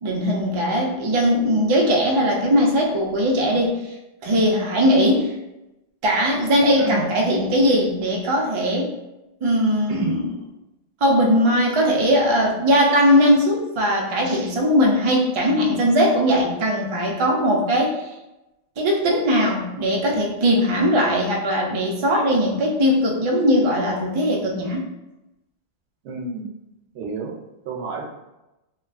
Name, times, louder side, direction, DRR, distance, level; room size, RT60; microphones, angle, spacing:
voice 1, 0.0-3.8 4.2-5.3 6.0-8.9 9.4-10.2 11.0-17.9 18.8-24.8, equal, 45° right, -1 dB, 0.4 m, -19 dB
voice 2, 6.8-7.1 9.9-10.1 14.2-14.5 26.0-26.5 26.9-27.3 27.6-28.0, right 5 dB, 90° right, 0 dB, 0.9 m, -29 dB
2.8 x 2.4 x 2.4 m, 0.96 s
omnidirectional pair, 1.2 m